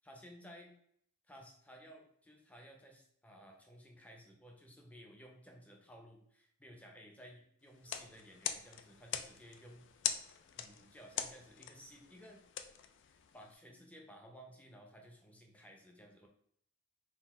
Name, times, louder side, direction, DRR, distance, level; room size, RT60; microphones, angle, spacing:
voice 1, 0.0-0.7 1.3-10.2 10.6-12.4 13.1-16.3, equal, 5° left, 1 dB, 0.6 m, -56 dB
sound 1, 7.7-13.5, left 9 dB, 55° left, 0.3 m, -43 dB
4.0 x 2.6 x 4.2 m, 0.67 s
head